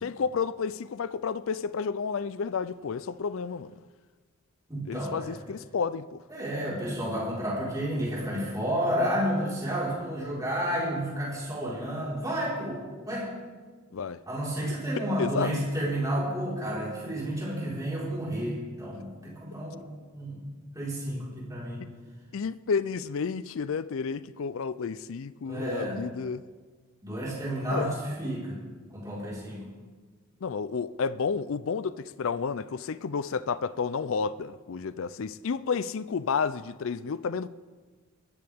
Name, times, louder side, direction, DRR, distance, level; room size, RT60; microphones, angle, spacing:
voice 1, 0.0-3.7 4.9-6.2 13.9-14.2 15.2-15.5 22.3-26.4 27.7-27.9 30.4-37.5, left 5 dB, 60° left, 0.4 m, -31 dB
voice 2, 4.7-5.4 6.3-13.3 14.3-20.5 20.7-21.9 25.5-26.0 27.0-28.6 28.9-29.7, equal, 15° right, 4.5 m, -31 dB
23.0 x 13.5 x 3.6 m
head